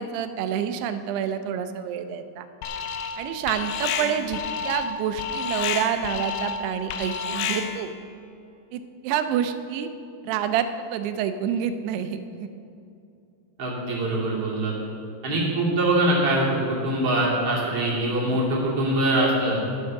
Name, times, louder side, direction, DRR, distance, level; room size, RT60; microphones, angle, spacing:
voice 1, 0.0-2.5 3.2-7.9 8.7-9.9 10.2-12.5 18.3-18.4, right 9 dB, 80° right, 9 dB, 2.6 m, -28 dB
Alarm, 2.6-3.2 3.5-7.9, left 6 dB, 80° left, 2.6 m, -30 dB
voice 2, 13.6-14.7 15.2-19.6, right 1 dB, 40° right, -5 dB, 3.1 m, -23 dB
11.5 x 9.5 x 6.5 m, 2.6 s
omnidirectional pair, 5.0 m